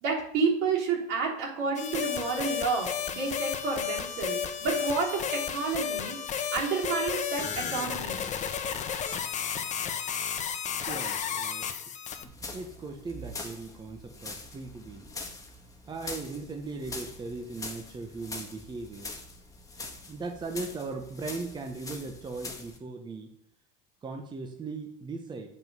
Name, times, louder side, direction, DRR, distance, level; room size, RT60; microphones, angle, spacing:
voice 1, 0.0-6.2 6.5-8.2, right 4 dB, 70° right, -2 dB, 3.2 m, -30 dB
sound 1, 1.8-12.2, left 8 dB, 35° left, 0.9 m, -33 dB
voice 2, 10.9-11.7 12.5-15.1 15.9-19.1 20.1-23.3 24.0-25.5, right 3 dB, 20° right, 4 dB, 0.9 m, -38 dB
sound 2, 12.2-22.8, left 2 dB, 15° left, 1.4 m, -43 dB
7.6 x 5.5 x 5.3 m, 0.71 s
supercardioid pair, 110°, 20 cm